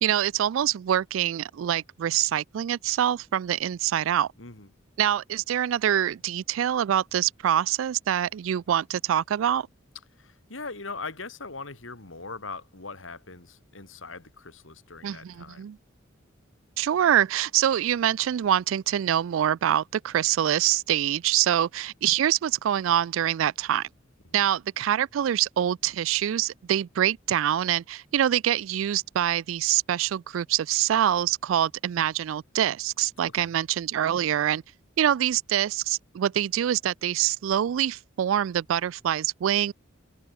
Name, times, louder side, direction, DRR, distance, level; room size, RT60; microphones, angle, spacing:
voice 1, 0.0-4.3 5.0-9.7 15.0-15.8 16.8-23.9 24.3-34.6 35.0-39.7, right 10 dB, 90° right, 0.3 m, -25 dB
voice 2, 10.2-15.7 24.3-24.4 33.3-33.5, left 4 dB, 80° left, 3.3 m, -40 dB
head